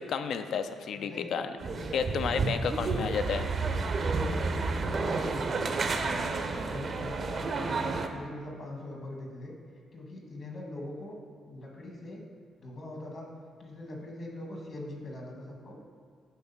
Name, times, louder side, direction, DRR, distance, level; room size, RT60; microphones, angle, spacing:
voice 1, 0.0-1.5 1.9-3.5, left 6 dB, 70° left, 9 dB, 0.4 m, -31 dB
voice 2, 0.9-1.3 1.6-1.8 2.2-2.6 3.7-6.3 6.6-7.5 7.8-9.5 9.9-11.2 11.5-12.2 12.6-13.3 13.6-15.8, left 1 dB, 50° left, 0 dB, 1.5 m, -42 dB
sound 1, 1.6-8.1, right 4 dB, 45° right, 0.6 m, -31 dB
8.5 x 3.5 x 5.6 m, 2.1 s
cardioid pair, 90°, 0 cm